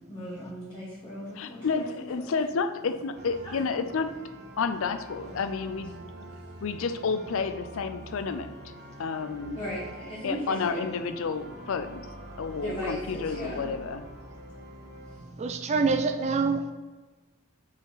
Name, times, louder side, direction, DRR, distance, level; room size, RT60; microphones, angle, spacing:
voice 1, 0.1-1.9 2.2-2.3 3.4-3.5 9.5-10.9 12.6-13.6 15.1-15.2, equal, 20° left, -8 dB, 1.3 m, -37 dB
voice 2, 1.3-4.2 4.6-5.9 6.6-8.7 9.0-9.6 10.2-12.1 12.4-14.0, left 5 dB, 60° left, 10 dB, 0.4 m, -30 dB
sound 1, 3.1-15.2, right 1 dB, 50° right, 0.8 m, -45 dB
voice 3, 15.4-16.7, right 4 dB, 30° right, 6 dB, 0.3 m, -25 dB
5.0 x 4.1 x 4.8 m, 1.3 s
head